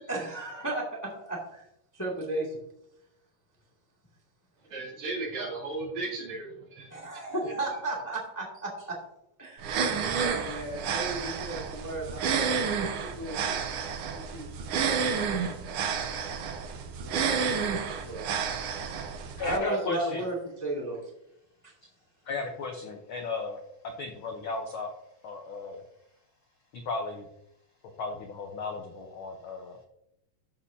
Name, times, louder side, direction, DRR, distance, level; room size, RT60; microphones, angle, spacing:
voice 1, 0.1-1.6 1.9-2.5 6.9-8.9 9.4-9.8 10.1-13.6 14.0-14.5 17.0-18.2 18.8-18.9 19.4-21.0, right 2 dB, 10° left, -3 dB, 1.5 m, -35 dB
voice 2, 4.7-7.5, right 3 dB, 65° right, -4 dB, 4.1 m, -36 dB
sound 1, 9.6-19.6, right 6 dB, 85° right, 1.2 m, -30 dB
voice 3, 19.4-20.2 22.3-23.6 24.0-25.8 26.7-27.3 28.0-29.8, left 3 dB, 75° left, 3 dB, 1.1 m, -35 dB
13.0 x 6.4 x 2.7 m, 0.80 s
omnidirectional pair, 3.5 m